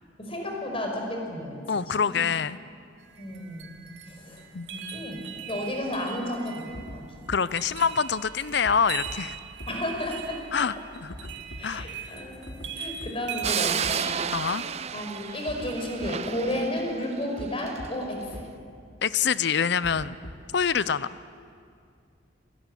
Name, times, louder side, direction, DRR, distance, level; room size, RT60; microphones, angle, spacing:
voice 1, 0.2-1.6 1.9-2.2 3.2-3.7 4.1-4.4 4.7-5.2 5.5-7.0 9.7-10.4 10.7-10.8 11.6-14.1 14.9-18.5, left 1 dB, 30° left, 2 dB, 5.4 m, -32 dB
voice 2, 1.7-2.6 4.5-4.7 7.3-9.4 10.5-11.3 11.6-11.8 14.3-14.6 19.0-20.2 20.5-21.1, left 6 dB, 60° left, 16 dB, 0.6 m, -25 dB
sound 1, 3.0-16.1, right 8 dB, 65° right, 2.7 m, -41 dB
sound 2, 6.7-7.0 7.3-7.4 8.6-8.7 9.1-9.2 9.6-9.7 11.1-11.9 12.5-12.7 13.0-13.1 13.4-13.5 13.8-13.9 15.5-15.7 16.0-16.1 17.4-17.5 17.8-17.9 18.3-18.4 19.8-20.5, equal, 75° left, 3.3 m, -39 dB
sound 3, 13.4-17.9, right 8 dB, 35° right, 0.5 m, -32 dB
26.5 x 19.5 x 9.9 m, 2.3 s
head